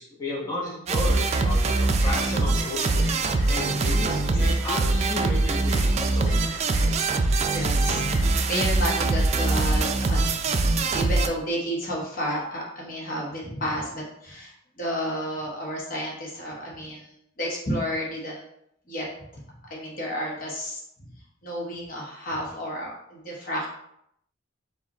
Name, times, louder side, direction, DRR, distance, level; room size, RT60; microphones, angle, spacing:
voice 1, 0.0-3.1 3.5-6.4 6.8-7.0, left 2 dB, 20° left, -6 dB, 1.0 m, -33 dB
sound 1, 0.9-11.3, right 3 dB, 35° right, 0.3 m, -23 dB
sound 2, 1.2-8.5, equal, 5° right, 1.7 m, -43 dB
voice 2, 7.5-10.6 10.9-18.4 18.9-19.1 19.3-19.4 19.7-20.8 21.4-23.7, equal, 45° left, -3 dB, 1.1 m, -31 dB
4.9 x 2.4 x 4.1 m, 0.74 s
head